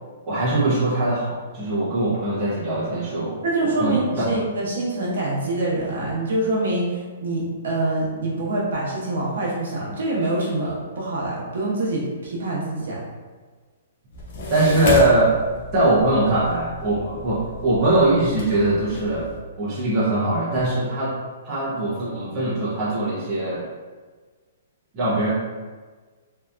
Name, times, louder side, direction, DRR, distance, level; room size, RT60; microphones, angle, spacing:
voice 1, 0.3-4.3 14.5-15.4 15.7-21.2 21.4-23.7 24.9-25.3, right 1 dB, 20° right, -10 dB, 0.6 m, -21 dB
voice 2, 3.4-13.0, right 2 dB, 70° right, -4 dB, 0.8 m, -25 dB
sound 1, 14.1-19.4, left 1 dB, 35° left, 0.4 m, -31 dB
2.7 x 2.4 x 2.2 m, 1.4 s
hypercardioid pair, 180°, 0 cm